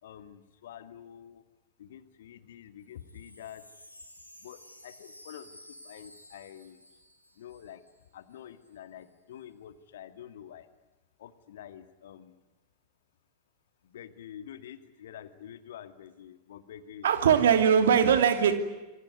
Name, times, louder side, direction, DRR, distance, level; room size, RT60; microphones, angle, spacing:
voice 1, 0.0-1.4 1.8-3.6 4.4-5.6 5.8-6.8 7.4-7.8 8.1-10.7 11.2-12.3 13.8-17.6, left 10 dB, 60° left, 2.0 m, -47 dB
Wind chime, 2.8-8.1 8.3-8.4 8.6-9.1, left 1 dB, 85° left, 4.8 m, -53 dB
voice 2, 17.0-18.5, right 8 dB, 60° right, 2.9 m, -21 dB
27.5 x 22.5 x 9.5 m
figure-of-eight pair, 90°, 0 cm